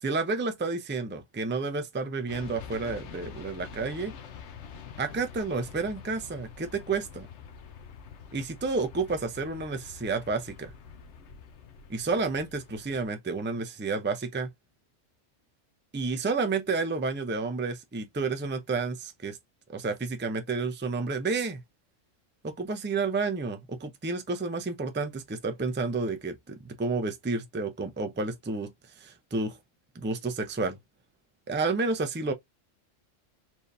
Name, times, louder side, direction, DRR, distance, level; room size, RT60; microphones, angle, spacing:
voice 1, 0.0-4.1 5.0-7.3 8.3-10.7 11.9-14.5 15.9-19.4 19.7-21.6 22.4-28.7 29.0-29.6 29.9-30.8 31.5-32.3, right 4 dB, 15° right, 0.4 m, -30 dB
sound 1, 2.3-13.1, left 6 dB, 65° left, 1.1 m, -46 dB
4.4 x 3.4 x 2.6 m
omnidirectional pair, 1.3 m